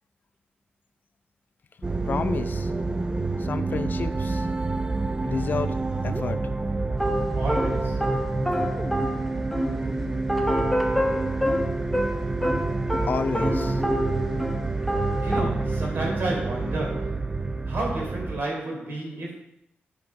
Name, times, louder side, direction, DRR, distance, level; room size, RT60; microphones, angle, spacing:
sound 1, 1.8-18.4, right 3 dB, 20° right, 0.7 m, -28 dB
voice 1, 2.1-2.7 3.5-4.5 5.2-5.8 6.0-6.4 8.6-8.7 13.1-13.8 14.3-14.4, left 5 dB, 55° left, 0.6 m, -30 dB
sound 2, 7.0-14.6 14.9-15.4, equal, ahead, 1.1 m, -27 dB
voice 2, 7.4-8.1 15.2-17.4 17.7-19.3, right 2 dB, 70° right, 3.8 m, -31 dB
9.9 x 5.2 x 5.8 m
wide cardioid pair, 95°, 4 cm